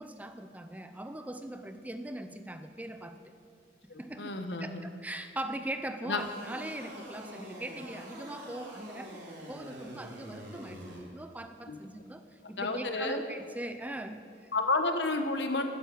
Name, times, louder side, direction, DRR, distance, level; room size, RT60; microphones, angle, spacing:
voice 1, 0.0-3.2 4.0-9.2 9.5-14.5, right 1 dB, 10° right, 8 dB, 0.5 m, -41 dB
voice 2, 3.9-4.8 6.0-6.2 11.7-11.8 12.6-13.2 14.5-15.6, left 3 dB, 85° left, 6 dB, 1.3 m, -31 dB
sound 1, 6.2-11.0, equal, 85° right, 3.7 m, -45 dB
12.5 x 10.0 x 7.6 m, 2.2 s
head